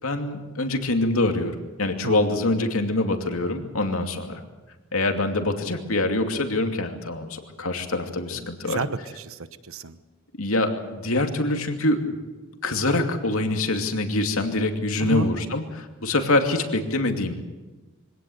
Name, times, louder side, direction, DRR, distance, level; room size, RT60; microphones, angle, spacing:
voice 1, 0.0-4.4 4.9-8.8 10.4-12.1 12.6-17.4, left 2 dB, 80° left, 5 dB, 2.6 m, -25 dB
voice 2, 2.0-2.4 8.3-10.0 15.0-15.3, right 3 dB, 75° right, 13 dB, 1.1 m, -32 dB
24.0 x 17.5 x 8.0 m, 1.2 s
head